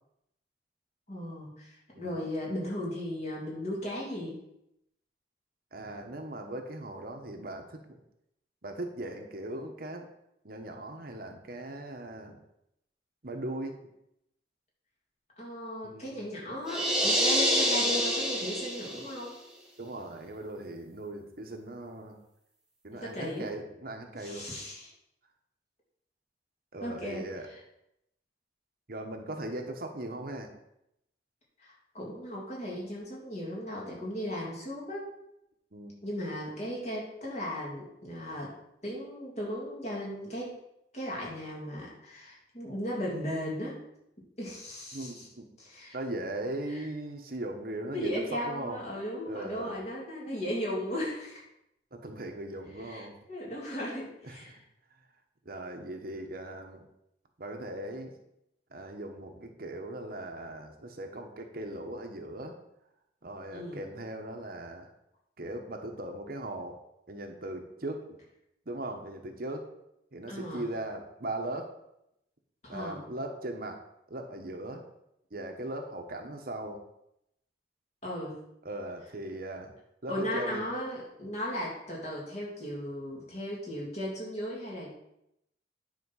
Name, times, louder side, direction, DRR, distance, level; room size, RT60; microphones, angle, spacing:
voice 1, 1.1-4.4 15.4-19.4 23.0-23.5 24.2-24.9 26.8-27.6 31.6-35.1 36.0-38.6 38.8-40.6 40.9-43.8 44.4-45.3 45.6-46.0 46.7-46.8 47.9-51.4 52.8-54.6 63.5-63.8 70.3-70.7 72.6-73.0 78.0-78.4 80.1-84.9, equal, 40° left, -4 dB, 3.0 m, -36 dB
voice 2, 5.7-7.8 8.6-10.1 10.4-12.4 13.2-13.9 15.8-16.2 19.8-22.2 22.8-24.5 26.7-27.5 28.9-30.5 35.7-35.9 44.9-45.5 45.9-48.8 49.3-49.8 51.9-53.1 54.2-54.6 55.4-56.8 57.4-58.2 58.7-62.6 63.2-64.9 65.4-66.8 67.1-68.0 68.7-69.7 70.1-71.7 72.7-73.8 74.1-74.8 75.3-76.8 78.6-79.7 80.0-80.6, right 1 dB, 55° right, 4 dB, 1.1 m, -39 dB
sound 1, 16.7-19.2, equal, 5° right, 1.6 m, -27 dB
9.8 x 4.4 x 6.3 m, 0.81 s
head